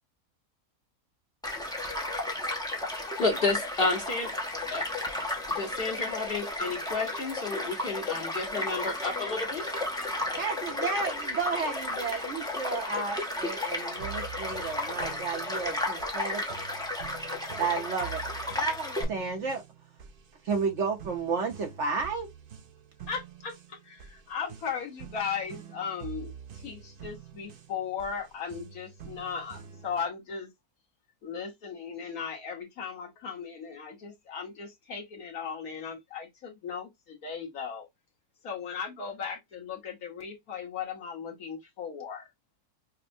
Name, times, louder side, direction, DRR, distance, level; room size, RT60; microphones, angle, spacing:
Child speech kid speaking / Stream / Car passing by, 1.4-19.0, left 1 dB, 5° left, 0.4 m, -33 dB
voice 1, 3.2-4.3 4.7-4.9 5.5-9.6, left 3 dB, 45° left, 1.0 m, -31 dB
voice 2, 10.4-16.4 17.6-18.2 19.1-19.6 20.4-22.3, right 5 dB, 60° right, 0.9 m, -32 dB
sound 1, 14.0-30.0, right 8 dB, 75° right, 0.5 m, -47 dB
voice 3, 23.1-30.5 31.2-37.9 38.4-42.3, left 6 dB, 65° left, 1.5 m, -37 dB
5.3 x 2.0 x 2.6 m
omnidirectional pair, 1.7 m